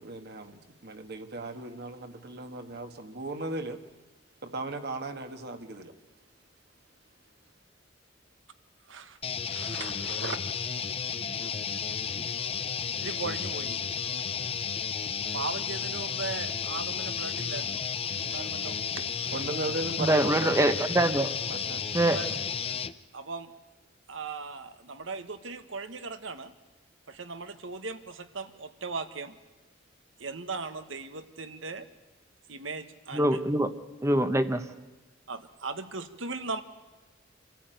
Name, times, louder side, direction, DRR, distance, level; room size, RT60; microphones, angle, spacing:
voice 1, 0.0-3.8 4.4-5.9 19.3-20.6 21.5-21.8, right 2 dB, 60° right, 1.6 m, -37 dB
voice 2, 8.9-9.2 9.4-10.4 11.4-11.5 13.0-13.8 15.3-17.8 18.2-19.3 22.1-22.3 23.1-23.5 24.1-26.5 27.1-29.4 30.2-31.9 32.5-33.4 35.3-36.6, right 4 dB, 80° right, 1.4 m, -38 dB
sound 1, 9.2-22.9, left 7 dB, 30° left, 0.6 m, -33 dB
voice 3, 20.0-21.3 21.9-22.2 33.1-33.7 34.0-34.6, right 1 dB, 15° right, 0.9 m, -24 dB
26.5 x 14.5 x 9.2 m
head